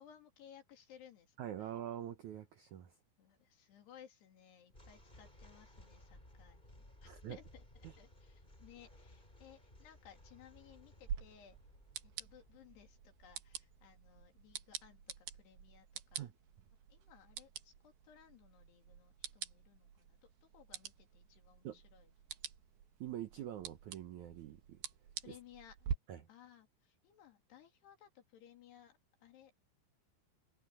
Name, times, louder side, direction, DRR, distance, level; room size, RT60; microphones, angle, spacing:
voice 1, 0.0-1.7 3.2-11.6 12.0-16.3 16.9-22.1 25.2-25.9 26.3-29.6, left 9 dB, 70° left, 4.8 m, -61 dB
voice 2, 1.4-2.9 7.0-7.4 7.8-7.9 16.2-16.3 21.6-21.8 23.0-24.8 25.2-25.3 26.1-26.2, right 11 dB, 90° right, 1.6 m, -45 dB
sound 1, 4.7-16.0, left 1 dB, 10° left, 5.1 m, -61 dB
sound 2, 11.1-25.9, right 8 dB, 65° right, 3.5 m, -48 dB
omnidirectional pair, 5.0 m